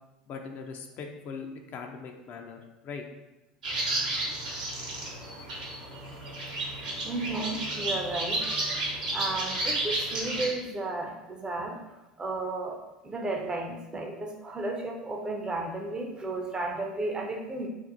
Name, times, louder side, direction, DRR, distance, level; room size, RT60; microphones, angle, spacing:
voice 1, 0.3-3.0, left 5 dB, 45° left, 3 dB, 0.4 m, -40 dB
sound 1, 3.6-10.5, right 2 dB, 80° right, 0.9 m, -32 dB
voice 2, 7.0-8.9 9.1-11.8 12.2-12.8 13.0-17.7, right 2 dB, 20° right, 2 dB, 0.5 m, -33 dB
2.6 x 2.0 x 3.9 m, 1.0 s
hypercardioid pair, 75°, 4 cm